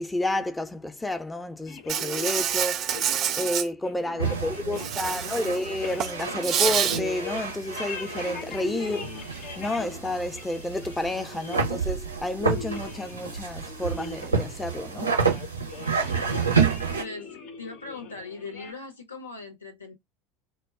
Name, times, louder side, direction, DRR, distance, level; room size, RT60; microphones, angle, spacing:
voice 1, 0.0-15.2, left 1 dB, 10° left, 0.5 m, -31 dB
sound 1, 1.7-18.7, left 5 dB, 50° left, 0.6 m, -41 dB
Insect, 1.9-3.7 4.8-5.6 5.9-7.0, right 9 dB, 45° right, 0.3 m, -27 dB
voice 2, 4.1-4.8 5.1-5.6 16.2-16.6 17.0-19.9, left 3 dB, 85° left, 0.7 m, -41 dB
sound 2, 4.2-17.0, right 5 dB, 90° right, 0.5 m, -30 dB
2.2 x 2.0 x 3.5 m
figure-of-eight pair, 75°, 0 cm